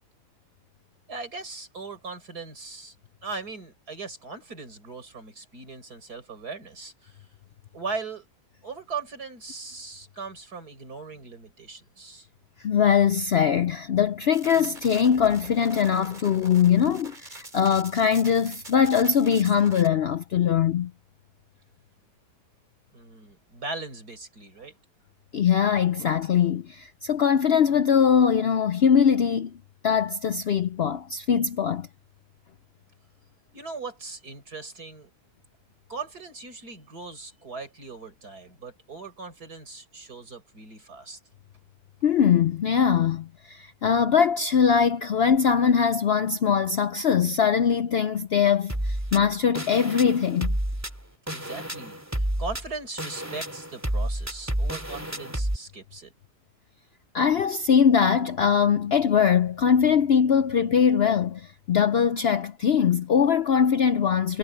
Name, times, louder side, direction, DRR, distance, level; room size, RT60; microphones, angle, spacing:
voice 1, 1.1-2.9 3.2-7.2 7.7-8.2 8.6-12.3 22.9-24.7 33.5-35.1 35.9-41.2 51.3-56.1, right 4 dB, 70° right, 5.7 m, -39 dB
voice 2, 12.6-20.9 25.3-29.5 29.8-31.9 42.0-50.6 57.1-64.4, left 7 dB, 70° left, 0.5 m, -22 dB
sound 1, 14.3-19.9, right 2 dB, 30° right, 3.7 m, -44 dB
sound 2, 48.7-55.6, right 1 dB, 10° right, 2.3 m, -30 dB
omnidirectional pair, 1.7 m